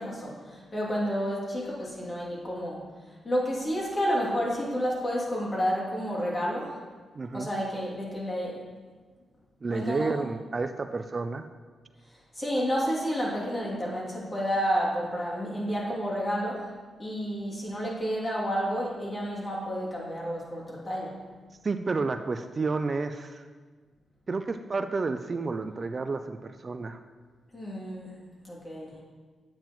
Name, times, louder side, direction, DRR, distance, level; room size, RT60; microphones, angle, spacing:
voice 1, 0.0-2.9 3.2-6.8 7.3-8.6 9.7-10.2 12.3-16.7 17.0-21.2 27.5-28.2 28.4-29.0, equal, 35° left, -5 dB, 2.7 m, -30 dB
voice 2, 7.2-7.5 9.6-11.5 21.6-23.4 24.3-27.0, right 3 dB, 40° right, 8 dB, 0.4 m, -30 dB
8.8 x 8.8 x 3.1 m, 1.4 s
cardioid pair, 75°, 0 cm